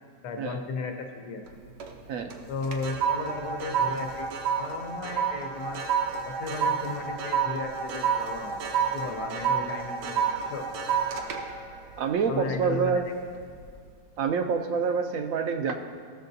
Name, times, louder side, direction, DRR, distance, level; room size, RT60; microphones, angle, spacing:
voice 1, 0.2-1.4 2.5-4.3 4.6-5.8 6.3-8.6 8.9-10.6 12.3-13.0, left 4 dB, 75° left, 4 dB, 1.3 m, -35 dB
sound 1, 1.5-2.0 2.3-12.9 13.3-13.6, right 7 dB, 85° right, 1.4 m, -29 dB
voice 2, 12.0-13.0 14.2-15.7, right 6 dB, 70° right, 6 dB, 0.8 m, -27 dB
14.5 x 6.5 x 2.7 m, 2.2 s
omnidirectional pair, 1.8 m